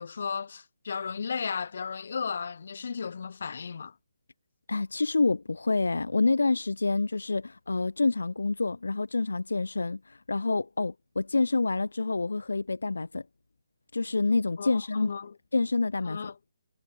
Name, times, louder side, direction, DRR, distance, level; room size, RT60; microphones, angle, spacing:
voice 1, 0.0-3.9 14.6-15.3 16.1-16.4, left 6 dB, 60° left, 5.7 m, -35 dB
voice 2, 4.7-13.2 13.9-15.1 15.5-16.3, left 3 dB, 80° left, 4.0 m, -27 dB
figure-of-eight pair, 150°, 0 cm